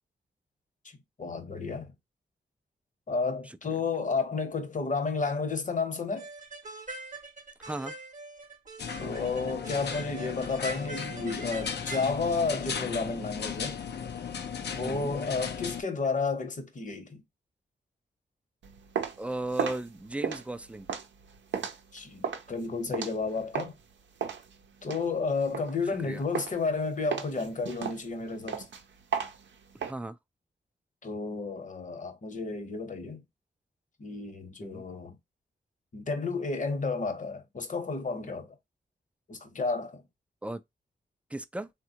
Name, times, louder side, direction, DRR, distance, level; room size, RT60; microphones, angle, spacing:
voice 1, 1.2-1.9 3.1-6.3 9.0-13.8 14.7-17.2 21.9-23.7 24.8-28.6 31.0-33.2 34.0-35.2 35.9-38.6 39.3-40.0, left 4 dB, 45° left, 0.9 m, -32 dB
sound 1, 6.2-12.1, right 2 dB, 45° right, 0.8 m, -43 dB
voice 2, 7.6-8.0 14.7-15.2 19.2-20.9 25.9-26.2 29.8-30.2 34.6-34.8 40.4-40.6 41.3-41.7, right 2 dB, 5° right, 0.3 m, -36 dB
sound 2, 8.8-15.8, left 7 dB, 65° left, 0.5 m, -36 dB
sound 3, 18.6-23.8 24.2-26.0 26.3-26.7 27.1-29.9, right 7 dB, 85° right, 0.6 m, -35 dB
3.4 x 2.2 x 2.7 m
cardioid pair, 70°, 19 cm